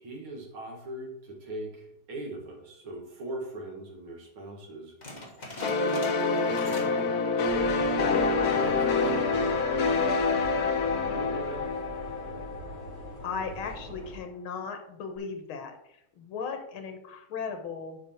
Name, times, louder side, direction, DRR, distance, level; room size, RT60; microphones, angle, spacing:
voice 1, 0.0-4.9 5.6-7.3 8.5-9.6 11.1-11.7, right 1 dB, 90° right, 0 dB, 2.8 m, -40 dB
sound 1, 5.0-7.1 7.3-7.7 8.2-8.3 8.9-9.3, left 2 dB, 25° left, 1.5 m, -43 dB
sound 2, 5.6-13.1, left 4 dB, 60° left, 1.1 m, -27 dB
sound 3, 7.4-14.2, right 1 dB, 40° right, 3.8 m, -43 dB
voice 2, 13.2-18.0, left 5 dB, 80° left, 5 dB, 2.0 m, -37 dB
8.2 x 5.4 x 4.4 m, 0.75 s
omnidirectional pair, 2.2 m